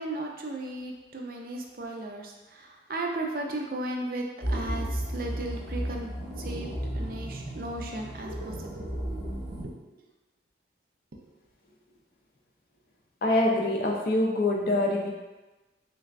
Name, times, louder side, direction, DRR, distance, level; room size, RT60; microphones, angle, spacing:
voice 1, 0.0-6.1 6.4-8.8 9.8-9.9 11.1-11.3, right 2 dB, 55° right, 1 dB, 0.5 m, -36 dB
sound 1, 4.4-9.6, equal, 70° right, 0.8 m, -34 dB
voice 2, 13.2-15.1, left 1 dB, 55° left, -1 dB, 0.5 m, -25 dB
3.2 x 3.2 x 2.5 m, 1.1 s
head